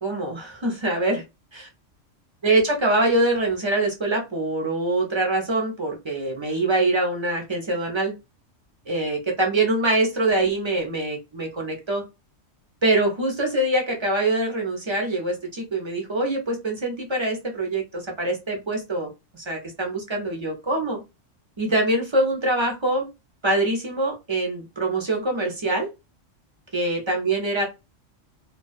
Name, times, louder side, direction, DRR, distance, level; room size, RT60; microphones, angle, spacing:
voice 1, 0.0-1.2 2.4-8.1 8.9-12.0 12.8-21.0 21.6-23.1 23.4-25.9 26.7-27.7, right 2 dB, 35° right, 1 dB, 0.4 m, -24 dB
2.2 x 2.2 x 2.4 m, 0.25 s
omnidirectional pair, 1.3 m